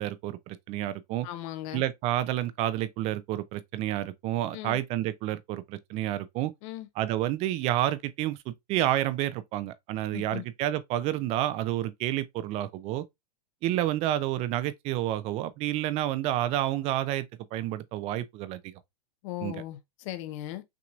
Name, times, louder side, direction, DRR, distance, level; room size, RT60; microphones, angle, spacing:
voice 1, 0.0-1.3 1.7-6.5 7.0-13.0 13.6-18.7 19.4-19.6, right 13 dB, 30° right, 0.5 m, -29 dB
voice 2, 1.2-1.8 4.5-4.8 6.6-6.9 10.1-10.4 19.2-20.6, left 14 dB, 50° left, 0.8 m, -38 dB
6.0 x 2.9 x 2.4 m
supercardioid pair, 140°, 20 cm